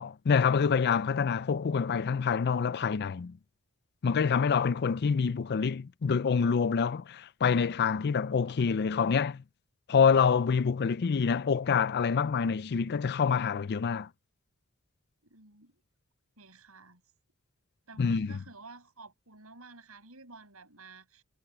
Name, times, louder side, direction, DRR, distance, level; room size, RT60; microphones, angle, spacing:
voice 1, 0.0-3.4 4.0-9.4 9.9-14.1 18.0-18.3, left 6 dB, 50° left, 0.4 m, -26 dB
voice 2, 15.2-15.8 16.4-17.0 17.9-21.2, right 3 dB, 75° right, 7.6 m, -51 dB
head